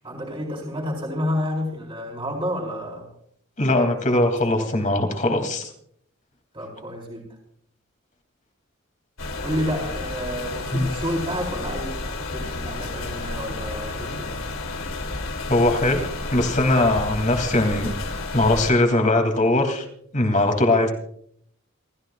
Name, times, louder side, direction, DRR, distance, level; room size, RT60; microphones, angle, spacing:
voice 1, 0.0-3.1 4.8-4.9 6.5-7.4 9.4-12.0 12.3-14.5, equal, 25° right, -2 dB, 4.2 m, -30 dB
voice 2, 3.6-5.7 10.7-10.9 15.5-17.9 18.3-19.8 20.1-20.9, left 1 dB, 40° left, 4 dB, 2.9 m, -20 dB
sound 1, 9.2-18.7, left 2 dB, 80° left, 2.7 m, -31 dB
29.0 x 14.5 x 2.5 m, 0.67 s
head